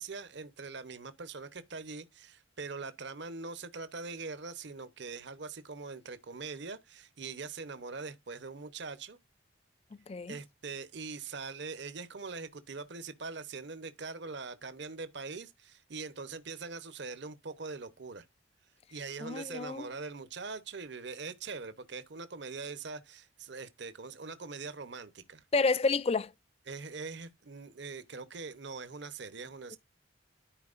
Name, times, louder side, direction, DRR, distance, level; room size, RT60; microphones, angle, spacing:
voice 1, 0.0-9.2 10.3-18.2 18.9-25.4 26.7-29.8, right 4 dB, 60° right, 0.9 m, -42 dB
voice 2, 10.1-10.4 19.2-19.9 25.5-26.3, left 4 dB, 30° left, 0.3 m, -29 dB
13.5 x 4.6 x 2.5 m
head